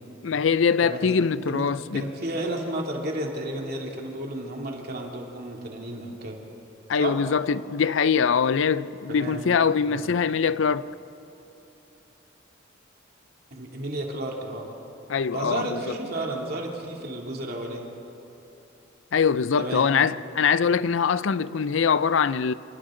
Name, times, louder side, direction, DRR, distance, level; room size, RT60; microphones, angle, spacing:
voice 1, 0.2-2.0 6.9-10.9 15.1-16.0 19.1-22.5, left 6 dB, 70° left, 0.5 m, -23 dB
voice 2, 1.9-6.4 7.0-7.2 9.1-9.4 9.9-10.0 13.5-14.7 15.3-17.9 19.6-19.9, right 1 dB, 50° right, 2.8 m, -32 dB
27.0 x 25.5 x 3.9 m
head